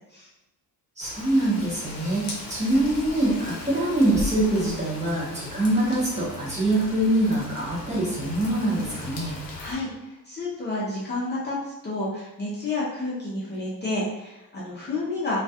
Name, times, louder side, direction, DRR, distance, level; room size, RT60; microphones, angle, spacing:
Rain, 1.0-9.7, left 2 dB, 70° left, 0.6 m, -38 dB
voice 1, 1.0-9.3, right 1 dB, 20° right, -7 dB, 0.6 m, -24 dB
voice 2, 9.6-15.4, left 2 dB, 30° left, -7 dB, 0.4 m, -30 dB
2.3 x 2.2 x 2.7 m, 0.95 s
wide cardioid pair, 170°, 35 cm